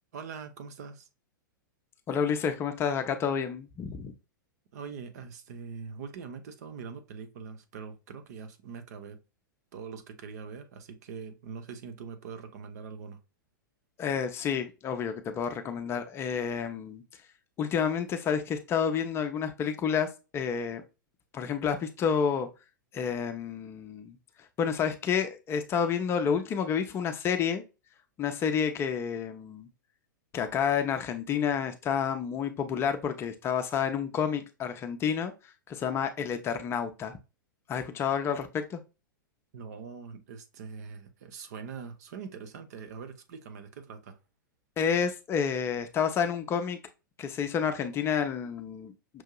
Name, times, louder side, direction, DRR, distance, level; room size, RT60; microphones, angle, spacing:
voice 1, 0.1-1.1 4.7-9.2 9.7-13.2 39.5-44.2, right 6 dB, 50° right, 0.8 m, -43 dB
voice 2, 2.1-4.1 14.0-17.0 17.6-20.1 20.3-20.8 21.3-22.5 22.9-24.2 24.6-27.6 28.2-29.7 30.3-35.3 35.7-37.1 37.7-38.8 44.8-46.8 47.2-49.2, left 7 dB, 25° left, 0.6 m, -29 dB
6.1 x 2.7 x 2.2 m
figure-of-eight pair, 100°, 11 cm